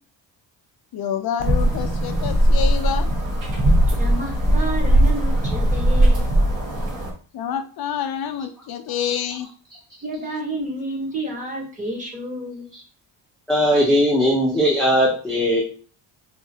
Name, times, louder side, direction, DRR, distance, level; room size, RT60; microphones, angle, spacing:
voice 1, 0.9-3.1 7.3-9.5, left 9 dB, 55° left, 7 dB, 0.5 m, -27 dB
sound 1, 1.4-7.1, right 1 dB, 50° right, 1.4 m, -19 dB
voice 2, 4.0-6.3 10.0-12.7, right 1 dB, 15° right, -1 dB, 1.2 m, -30 dB
voice 3, 13.5-15.6, equal, ahead, -6 dB, 0.7 m, -18 dB
4.7 x 2.5 x 2.8 m, 0.40 s
cardioid pair, 145°, 46 cm